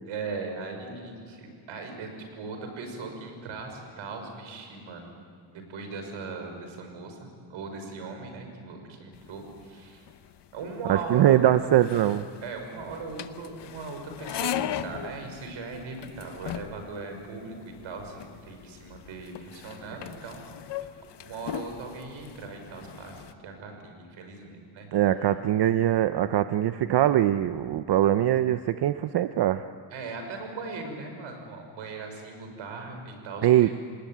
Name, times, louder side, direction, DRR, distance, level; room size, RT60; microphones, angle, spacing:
voice 1, 0.1-5.1 5.5-10.1 10.5-11.6 12.4-20.6 20.8-20.9 21.2-24.9 29.9-33.7, right 4 dB, 80° right, 4 dB, 6.0 m, -39 dB
sound 1, 9.1-23.3, left 11 dB, 60° left, 1.0 m, -39 dB
voice 2, 10.9-12.3 24.9-29.6 33.4-33.7, right 12 dB, 55° right, 10 dB, 0.7 m, -22 dB
28.0 x 20.0 x 9.3 m, 2.2 s
cardioid pair, 150°, 47 cm